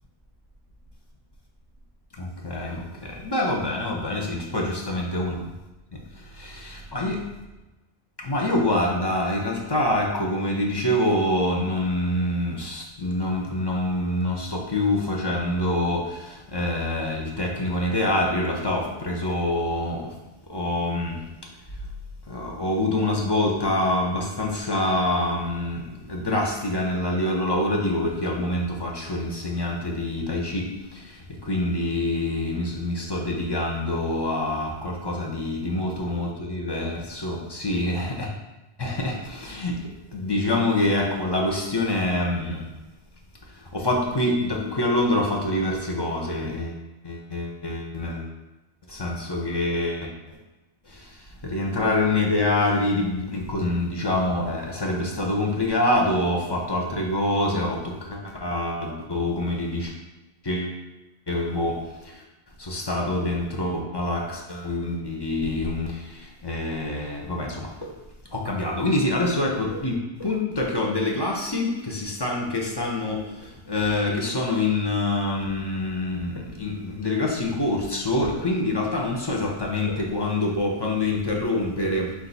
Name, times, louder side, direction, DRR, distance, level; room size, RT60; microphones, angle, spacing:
voice 1, 2.1-5.5 5.9-7.2 8.2-20.1 20.5-21.2 22.3-38.3 38.8-42.6 43.5-48.3 48.9-50.1 50.9-59.9 60.4-60.8 61.3-62.2 62.6-67.9 68.3-82.1, left 1 dB, 30° left, -1 dB, 0.5 m, -26 dB
4.6 x 2.6 x 4.0 m, 1.1 s
omnidirectional pair, 1.1 m